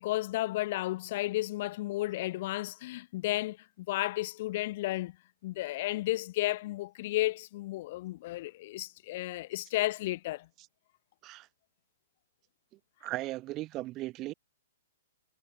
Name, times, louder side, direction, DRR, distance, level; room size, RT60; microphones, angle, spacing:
voice 1, 0.0-5.2 5.4-10.5, left 17 dB, 45° left, 0.7 m, -33 dB
voice 2, 13.0-14.3, right 17 dB, 25° right, 0.6 m, -37 dB
hypercardioid pair, 155°, 0 cm